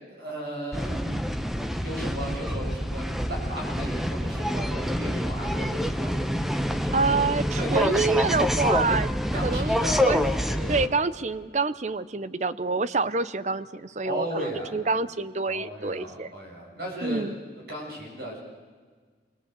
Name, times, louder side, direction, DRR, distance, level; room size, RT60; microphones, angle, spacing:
voice 1, 0.1-1.1 1.5-6.1 6.7-7.3 7.5-8.2 9.3-10.9 14.0-14.7 15.5-17.2 17.7-18.4, equal, 55° right, -1 dB, 7.5 m, -35 dB
sound 1, 0.7-10.9, equal, ahead, 0.7 m, -27 dB
voice 2, 6.9-9.1 9.4-10.3 10.7-16.3 17.0-17.4, right 4 dB, 40° right, 15 dB, 0.7 m, -27 dB
26.0 x 20.5 x 8.2 m, 1.5 s
head